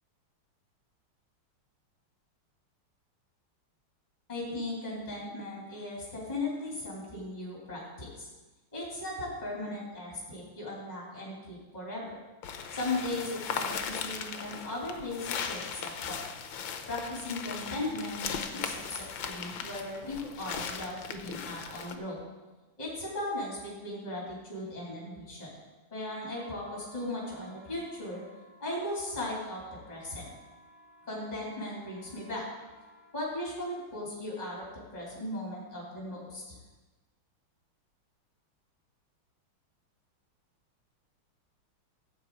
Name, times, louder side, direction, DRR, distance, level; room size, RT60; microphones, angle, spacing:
voice 1, 4.3-8.3 8.7-12.2 12.7-16.2 16.9-22.2 22.8-25.5 25.9-28.2 28.6-29.6 29.9-30.4 31.1-32.4 33.1-34.7 34.9-36.6, left 1 dB, 20° left, -4 dB, 2.8 m, -37 dB
sound 1, 12.4-22.0, left 7 dB, 70° left, 1.6 m, -38 dB
sound 2, 26.0-33.2, right 1 dB, 20° right, 4.9 m, -57 dB
15.5 x 8.0 x 4.5 m, 1.2 s
omnidirectional pair, 2.4 m